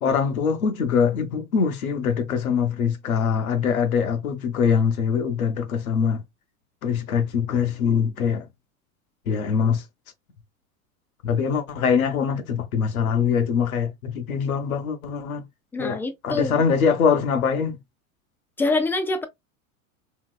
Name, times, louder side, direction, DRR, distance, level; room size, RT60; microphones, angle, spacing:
voice 1, 0.0-6.2 6.8-8.5 9.3-9.8 11.2-15.4 15.8-17.8, left 6 dB, 80° left, 0.9 m, -23 dB
voice 2, 15.7-16.6 18.6-19.2, left 2 dB, 5° left, 0.4 m, -25 dB
2.9 x 2.9 x 2.2 m
hypercardioid pair, 85°, 42 cm